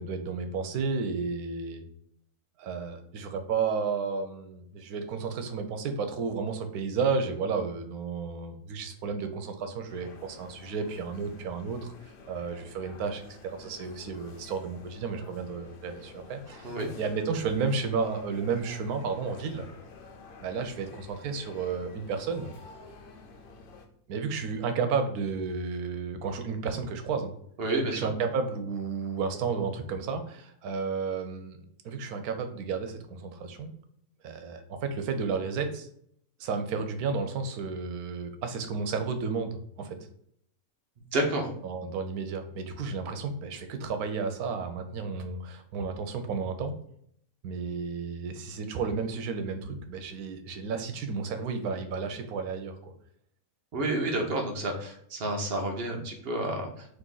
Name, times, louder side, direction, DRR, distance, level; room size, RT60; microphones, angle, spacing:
voice 1, 0.0-1.8 2.6-11.9 12.3-16.7 17.0-19.7 20.4-22.5 24.1-27.3 27.8-33.7 34.2-35.9 36.4-40.0 41.6-46.7 47.4-52.9, right 5 dB, 85° right, 7 dB, 1.1 m, -32 dB
sound 1, 9.9-23.9, left 4 dB, 65° left, 0.5 m, -50 dB
voice 2, 27.6-28.1 41.1-41.5 53.7-56.9, right 1 dB, 50° right, 2 dB, 1.0 m, -30 dB
4.0 x 2.8 x 3.8 m, 0.68 s
omnidirectional pair, 1.5 m